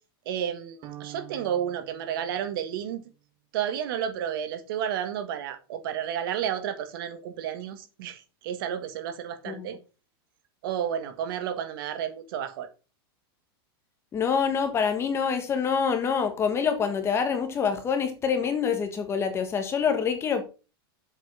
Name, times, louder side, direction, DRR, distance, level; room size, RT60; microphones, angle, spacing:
voice 1, 0.2-3.0 3.5-9.8 10.6-12.7, right 9 dB, 65° right, 1.7 m, -31 dB
sound 1, 0.8-3.1, right 14 dB, 30° right, 1.1 m, -47 dB
voice 2, 14.1-20.4, left 6 dB, 20° left, 1.5 m, -26 dB
7.5 x 5.5 x 5.5 m
supercardioid pair, 155°, 13 cm